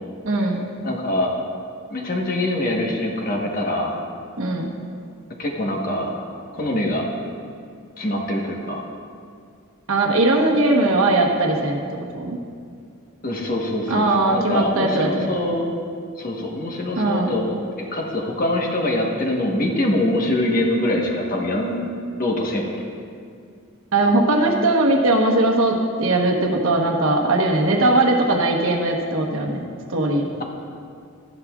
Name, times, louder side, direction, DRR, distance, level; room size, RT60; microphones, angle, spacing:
voice 1, 0.2-0.6 4.4-4.7 9.9-12.4 13.9-15.3 16.9-17.3 23.9-29.6 29.9-30.3, right 2 dB, 65° right, 0 dB, 1.2 m, -19 dB
voice 2, 0.8-1.3 1.9-4.0 5.4-6.1 6.5-7.1 8.0-8.8 13.2-15.7 16.2-21.8 22.2-22.7, left 1 dB, 40° left, 0 dB, 1.2 m, -24 dB
14.0 x 11.0 x 2.4 m, 2.3 s
head